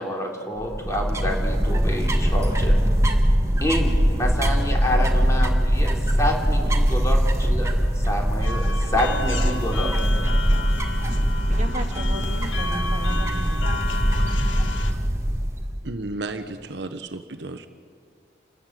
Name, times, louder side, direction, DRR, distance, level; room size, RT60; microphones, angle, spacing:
voice 1, 0.0-2.7 3.0-3.2 3.6-9.9, left 1 dB, 15° left, 0 dB, 3.2 m, -28 dB
sound 1, 0.6-15.8, equal, 15° right, 1.6 m, -22 dB
sound 2, 8.4-14.9, left 3 dB, 85° left, 1.5 m, -33 dB
voice 2, 11.5-13.9, right 1 dB, 40° right, 3 dB, 2.3 m, -35 dB
voice 3, 15.8-17.7, right 2 dB, 65° right, 8 dB, 1.0 m, -33 dB
29.0 x 14.0 x 9.2 m, 2.2 s
head